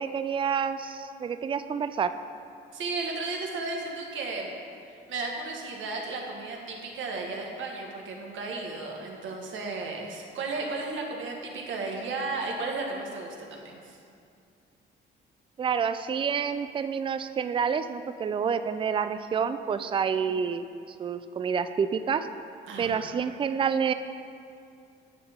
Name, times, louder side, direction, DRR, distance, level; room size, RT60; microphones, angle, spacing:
voice 1, 0.0-2.1 15.6-20.7 21.0-22.3 22.8-23.9, right 6 dB, 25° right, 11 dB, 0.3 m, -28 dB
voice 2, 2.7-4.5 4.8-14.0 20.2-20.3 22.7-23.1, right 3 dB, 75° right, 0 dB, 1.4 m, -34 dB
9.6 x 7.1 x 3.6 m, 2.4 s
cardioid pair, 90°, 20 cm